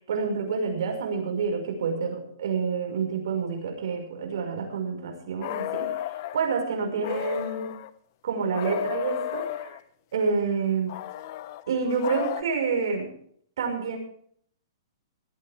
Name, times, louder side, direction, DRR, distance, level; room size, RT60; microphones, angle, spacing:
voice 1, 0.1-5.9 6.3-7.7 8.2-9.7 10.1-10.9 11.7-13.1 13.6-14.0, right 5 dB, 65° right, 3 dB, 5.9 m, -28 dB
sound 1, 5.4-6.4 7.0-7.9 8.5-9.8 10.9-12.4, left 13 dB, 45° left, 1.1 m, -33 dB
19.0 x 14.0 x 3.6 m, 0.62 s
hypercardioid pair, 155°, 2 cm